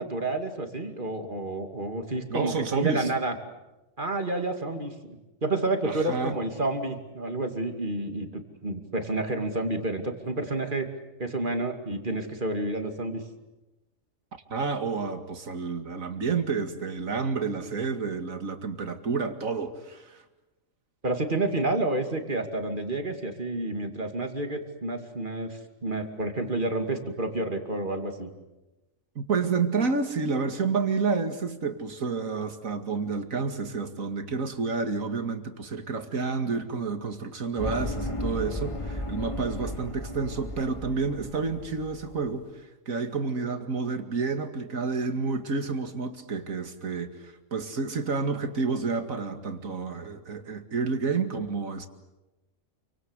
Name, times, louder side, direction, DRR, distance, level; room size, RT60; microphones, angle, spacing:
voice 1, 0.0-3.3 4.0-10.9 11.2-13.2 21.0-28.3, right 2 dB, 35° right, 5 dB, 2.7 m, -30 dB
voice 2, 2.3-3.1 5.8-6.4 14.5-20.2 29.2-42.5 42.9-51.9, right 4 dB, 75° right, 7 dB, 2.5 m, -30 dB
sound 1, 37.6-42.4, left 1 dB, 20° left, 3.0 m, -35 dB
29.0 x 24.5 x 8.2 m, 1.0 s
omnidirectional pair, 1.4 m